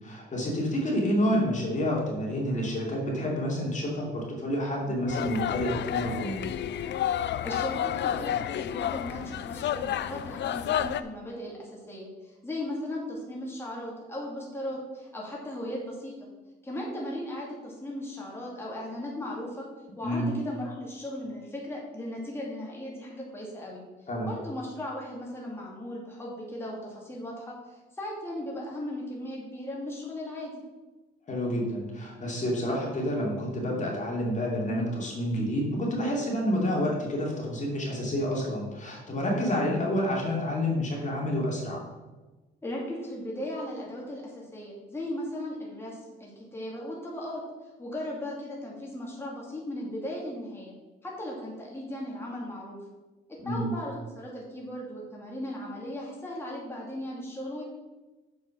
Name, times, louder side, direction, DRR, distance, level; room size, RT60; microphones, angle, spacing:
voice 1, 0.0-6.4 20.0-20.3 24.1-24.3 31.3-41.8 53.4-53.7, equal, 40° left, -2 dB, 2.6 m, -29 dB
sound 1, 5.1-11.0, left 10 dB, 65° left, 0.5 m, -30 dB
voice 2, 7.4-16.3 16.6-19.7 20.0-23.8 24.2-30.6 42.6-47.4 47.8-50.7 51.0-52.8 53.3-57.6, left 1 dB, 10° left, -4 dB, 2.5 m, -37 dB
7.0 x 6.2 x 5.9 m, 1.2 s
cardioid pair, 90°, 20 cm